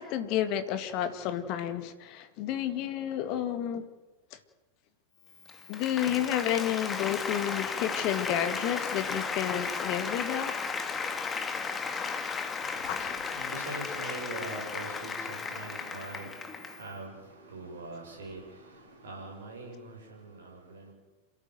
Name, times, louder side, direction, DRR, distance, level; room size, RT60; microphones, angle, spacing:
voice 1, 0.0-3.8 4.3-4.4 5.7-10.6 12.9-13.2, left 10 dB, 40° left, 1.9 m, -31 dB
Applause, 5.3-16.9, left 5 dB, 20° left, 2.0 m, -35 dB
voice 2, 12.6-20.9, right 2 dB, 65° right, 7.0 m, -43 dB
28.0 x 13.5 x 8.0 m
figure-of-eight pair, 90°, 0 cm